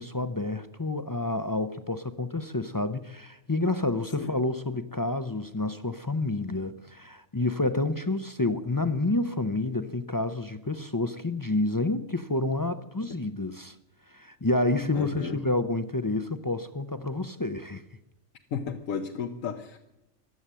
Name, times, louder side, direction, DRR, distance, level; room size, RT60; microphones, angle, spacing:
voice 1, 0.0-13.8 14.1-17.8, left 2 dB, 35° left, 0.3 m, -29 dB
voice 2, 14.9-15.4 18.5-19.8, left 6 dB, 90° left, 1.3 m, -33 dB
15.5 x 11.0 x 7.5 m
omnidirectional pair, 1.3 m